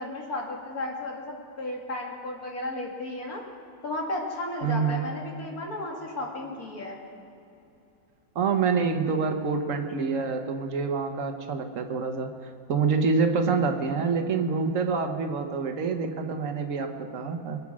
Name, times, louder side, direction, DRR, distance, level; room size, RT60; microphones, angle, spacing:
voice 1, 0.0-3.4 3.8-7.0, left 2 dB, 50° left, -1 dB, 2.5 m, -34 dB
voice 2, 4.6-5.1 8.3-12.3 12.7-17.6, right 5 dB, 50° right, 5 dB, 1.2 m, -26 dB
22.5 x 8.6 x 6.1 m, 2.8 s
omnidirectional pair, 2.1 m